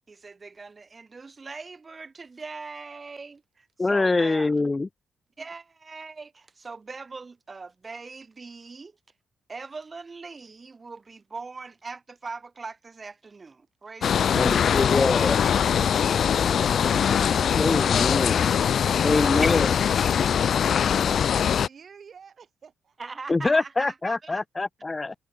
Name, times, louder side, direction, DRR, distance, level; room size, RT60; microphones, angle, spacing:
voice 1, 0.1-4.5 5.4-9.0 9.5-17.3 23.0-24.4, right 4 dB, 35° right, 0.7 m, -42 dB
voice 2, 3.8-4.9 14.3-15.4 17.6-18.4 19.0-19.8 23.3-25.1, left 3 dB, 25° left, 0.6 m, -24 dB
sound 1, 14.0-21.7, left 8 dB, 60° left, 0.3 m, -22 dB
voice 3, 17.2-18.6 19.0-23.0, right 6 dB, 50° right, 1.5 m, -48 dB
cardioid pair, 80°, 0 cm